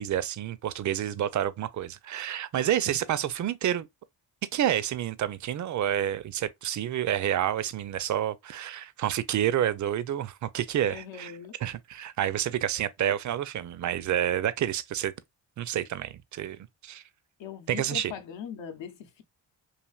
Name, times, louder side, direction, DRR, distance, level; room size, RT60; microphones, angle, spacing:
voice 1, 0.0-3.9 4.5-11.3 11.6-15.1 15.6-17.0 17.7-18.1, right 11 dB, 40° right, 0.4 m, -29 dB
voice 2, 10.9-11.5 17.4-19.2, left 8 dB, 70° left, 0.7 m, -41 dB
3.3 x 2.5 x 2.3 m
cardioid pair, 50°, 47 cm